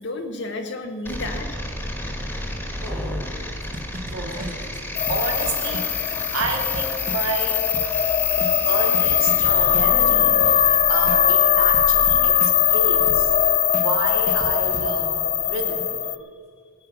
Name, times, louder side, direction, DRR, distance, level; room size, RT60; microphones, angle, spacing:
voice 1, 0.0-2.5 7.9-8.1 16.2-16.3, left 2 dB, 50° left, 3 dB, 1.0 m, -34 dB
sound 1, 1.0-10.5, left 1 dB, 10° left, 1.6 m, -33 dB
voice 2, 2.8-3.4 4.0-7.7 8.6-13.3 13.7-15.9, right 3 dB, 70° right, 0 dB, 2.6 m, -30 dB
sound 2, 3.6-14.9, right 1 dB, 40° right, 1.4 m, -37 dB
sound 3, 5.0-16.2, left 9 dB, 30° left, 0.6 m, -20 dB
20.5 x 8.8 x 6.2 m, 2.1 s
head